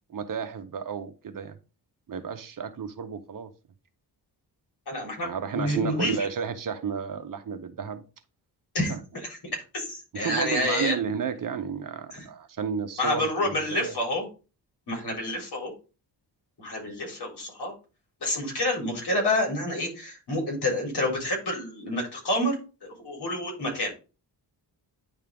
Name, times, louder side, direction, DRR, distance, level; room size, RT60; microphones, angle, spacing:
voice 1, 0.1-1.5 2.1-3.5 5.2-8.0 8.9-9.0 10.1-13.5 13.8-13.9, right 6 dB, 50° right, 0.8 m, -32 dB
voice 2, 4.9-6.3 8.7-10.9 12.1-12.2 13.0-14.3 14.9-15.7 16.6-17.7 18.2-22.5 22.8-23.9, left 1 dB, 70° left, 3.7 m, -28 dB
9.8 x 3.6 x 3.5 m
wide cardioid pair, 105°, 41 cm